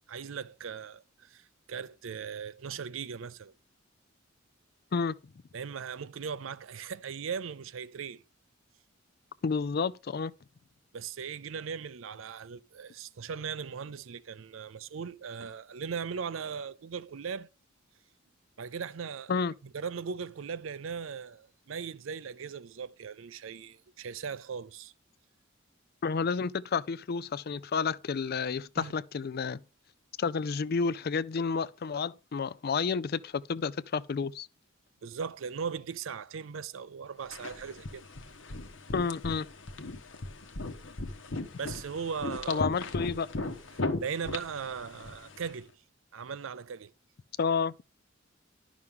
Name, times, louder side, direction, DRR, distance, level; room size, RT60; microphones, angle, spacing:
voice 1, 0.1-3.5 5.5-8.2 10.9-17.5 18.6-24.9 28.8-28.9 35.0-38.1 41.6-42.6 43.7-45.7 46.1-46.9, right 6 dB, 80° right, 0.5 m, -38 dB
voice 2, 9.4-10.3 19.3-19.5 26.0-29.6 30.2-34.5 38.9-39.5 42.5-43.3 47.4-47.7, left 5 dB, 50° left, 0.4 m, -30 dB
sound 1, 37.3-45.5, left 2 dB, 70° left, 1.1 m, -37 dB
11.0 x 6.1 x 3.6 m
head